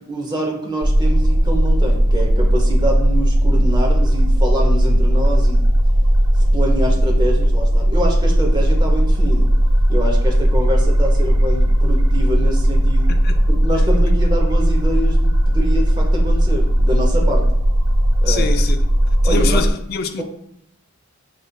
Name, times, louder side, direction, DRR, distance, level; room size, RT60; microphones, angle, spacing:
voice 1, 0.1-5.6 6.4-9.5 9.9-13.1 13.5-17.4 18.2-18.5 19.2-19.6 20.2-20.3, right 1 dB, 20° right, 0.7 m, -25 dB
sound 1, 0.8-19.7, equal, 70° right, 0.6 m, -16 dB
voice 2, 18.3-18.8 19.2-20.2, left 5 dB, 45° left, 0.3 m, -25 dB
6.5 x 2.4 x 2.2 m
head